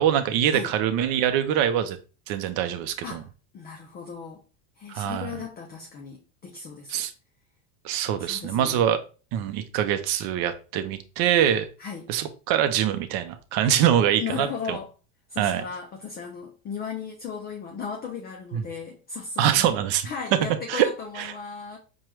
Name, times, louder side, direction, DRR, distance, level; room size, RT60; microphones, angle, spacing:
voice 1, 0.0-2.0 2.3-3.2 4.9-5.4 6.9-7.1 7.8-9.0 9.3-11.7 12.1-14.8 15.4-15.6 18.5-18.6 19.4-20.1 20.7-20.9 21.2-21.3, right 10 dB, 50° right, 0.6 m, -24 dB
voice 2, 3.5-4.4 4.8-7.0 8.2-8.8 11.8-12.1 14.2-14.9 15.3-19.8 20.0-21.8, left 6 dB, 25° left, 0.3 m, -36 dB
4.5 x 2.3 x 3.0 m
supercardioid pair, 115°, 46 cm